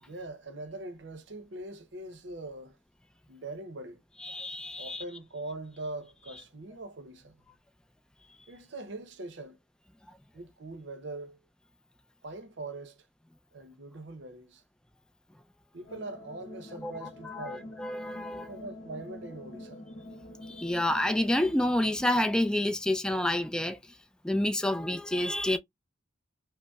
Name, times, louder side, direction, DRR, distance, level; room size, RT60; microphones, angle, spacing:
voice 1, 0.0-2.8 3.3-4.0 4.8-7.4 8.5-9.6 10.3-11.4 12.2-13.1 13.5-14.6 15.7-17.7 18.5-19.8, right 2 dB, 65° right, 0.7 m, -42 dB
voice 2, 4.2-5.0 16.8-16.9 17.2-18.5 20.5-23.8 24.2-25.6, left 1 dB, 5° left, 0.4 m, -28 dB
sound 1, 15.8-22.2, left 1 dB, 45° left, 1.0 m, -46 dB
5.2 x 2.0 x 2.3 m
head